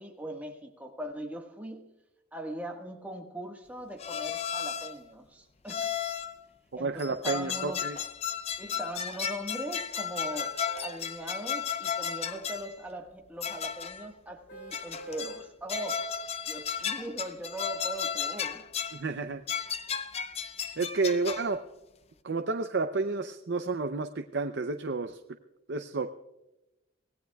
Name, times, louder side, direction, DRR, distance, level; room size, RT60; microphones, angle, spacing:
voice 1, 0.0-1.9 2.3-5.9 6.7-7.9 8.6-16.2 16.5-18.7, right 1 dB, 10° right, 1 dB, 1.5 m, -40 dB
sound 1, 4.0-5.0 5.7-6.4 7.0-12.7 13.4-14.1 14.7-15.4 15.7-19.0 19.5-21.6, left 7 dB, 30° left, 0.5 m, -34 dB
voice 2, 6.8-8.0 18.9-19.4 20.8-21.6 22.2-25.2 25.7-26.1, right 3 dB, 60° right, 7 dB, 0.6 m, -30 dB
sound 2, 10.3-11.0 11.6-11.7 14.5-15.4 16.0-16.1, right 3 dB, 55° left, 4.2 m, -46 dB
25.5 x 18.0 x 2.3 m, 0.97 s
head